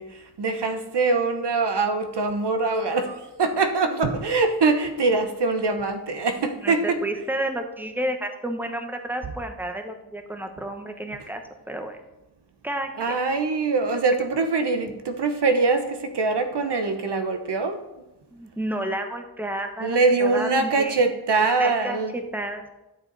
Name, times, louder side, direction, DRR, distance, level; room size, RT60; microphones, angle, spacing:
voice 1, 0.0-7.2 9.2-9.3 11.2-11.3 13.0-17.8 19.8-22.2, right 3 dB, 85° right, 7 dB, 1.0 m, -23 dB
voice 2, 7.0-11.4 11.7-12.0 12.6-12.9 18.3-21.0 21.6-22.0 22.3-22.7, right 1 dB, 5° right, 5 dB, 1.0 m, -31 dB
12.0 x 6.9 x 4.0 m, 0.97 s
wide cardioid pair, 85°, 40 cm